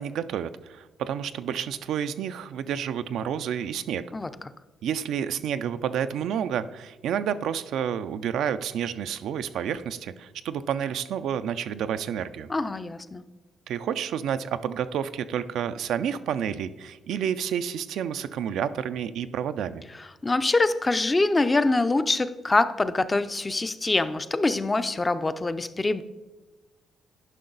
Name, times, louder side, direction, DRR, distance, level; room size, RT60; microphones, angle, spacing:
voice 1, 0.0-4.0 4.8-12.5 13.7-19.8, right 8 dB, 75° right, 11 dB, 0.4 m, -30 dB
voice 2, 12.5-13.2 20.0-26.0, left 2 dB, 20° left, 12 dB, 0.4 m, -24 dB
10.5 x 5.2 x 3.9 m, 1.2 s
cardioid pair, 90°, 0 cm